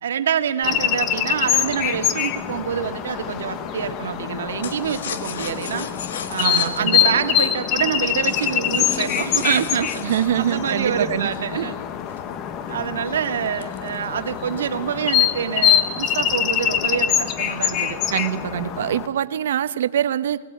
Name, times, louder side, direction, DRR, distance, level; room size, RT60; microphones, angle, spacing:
voice 1, 0.0-5.9 6.3-10.0 10.4-11.8 12.7-18.0, right 8 dB, 85° right, 7 dB, 1.8 m, -26 dB
sound 1, 0.6-19.1, left 9 dB, 25° left, 1.0 m, -24 dB
sound 2, 4.6-11.5 12.1-14.5 14.9-15.0 15.3-15.6 16.1-16.8 17.1-17.7, left 7 dB, 70° left, 1.7 m, -36 dB
voice 2, 6.4-7.2 10.0-11.5 18.1-20.4, right 10 dB, 65° right, 14 dB, 0.9 m, -24 dB
20.0 x 18.5 x 8.5 m, 1.4 s
hypercardioid pair, 165°, 0 cm